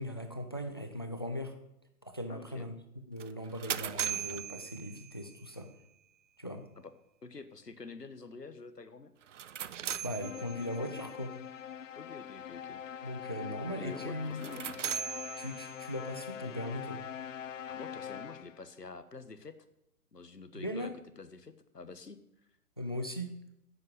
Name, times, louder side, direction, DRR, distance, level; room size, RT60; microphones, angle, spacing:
voice 1, 0.0-1.5 2.0-2.7 3.1-5.7 6.4-6.6 10.0-11.3 13.0-14.4 15.4-17.0 20.5-20.9 22.8-23.3, equal, 20° left, 7 dB, 0.4 m, -39 dB
voice 2, 2.3-2.7 6.8-6.9 7.2-9.1 12.0-13.2 13.7-14.7 17.7-19.5 20.1-20.9 21.2-22.2, left 4 dB, 90° left, 11 dB, 1.4 m, -47 dB
sound 1, 3.2-5.4 9.2-10.9 14.3-16.1, right 8 dB, 50° right, 0.6 m, -39 dB
sound 2, 10.2-18.7, left 9 dB, 55° left, 0.7 m, -43 dB
10.5 x 7.7 x 7.8 m, 0.82 s
figure-of-eight pair, 125°, 47 cm